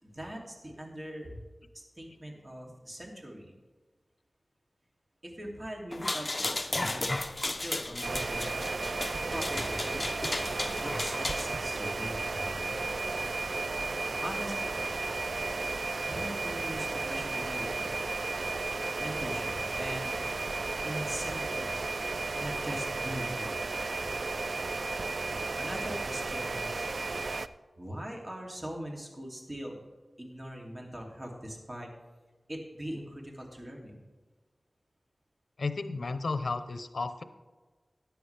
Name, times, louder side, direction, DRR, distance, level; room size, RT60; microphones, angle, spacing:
voice 1, 0.0-1.4 1.7-3.5 5.2-8.7 9.3-10.0 10.8-12.8 14.2-14.9 16.0-18.0 19.0-20.1 20.8-21.9 22.4-23.6 25.6-26.9 27.8-29.8 30.2-31.9 32.5-34.0, equal, 30° right, -1 dB, 2.7 m, -41 dB
sound 1, 5.9-11.5, left 2 dB, 35° left, 0.8 m, -34 dB
sound 2, 6.6-13.7, equal, 5° left, 2.3 m, -53 dB
sound 3, 8.0-27.5, right 3 dB, 70° right, 0.4 m, -34 dB
voice 2, 35.6-37.2, left 3 dB, 80° left, 11 dB, 0.7 m, -33 dB
13.5 x 10.0 x 3.4 m, 1.3 s
wide cardioid pair, 55°, 0 cm